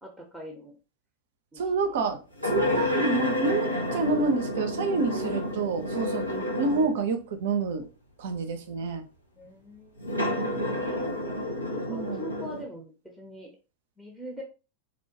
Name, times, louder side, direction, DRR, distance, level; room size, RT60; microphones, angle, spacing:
voice 1, 0.0-0.7 1.5-1.9 9.3-10.3 11.7-13.5 14.0-14.4, equal, 5° right, -1 dB, 0.7 m, -43 dB
voice 2, 1.6-7.9 8.2-9.0 11.9-12.2, right 4 dB, 55° right, 7 dB, 0.5 m, -28 dB
sound 1, 2.4-7.1 7.8-7.9 10.0-12.6, left 1 dB, 90° left, 0.7 m, -29 dB
2.6 x 2.2 x 2.7 m, 0.33 s
figure-of-eight pair, 90°, 0 cm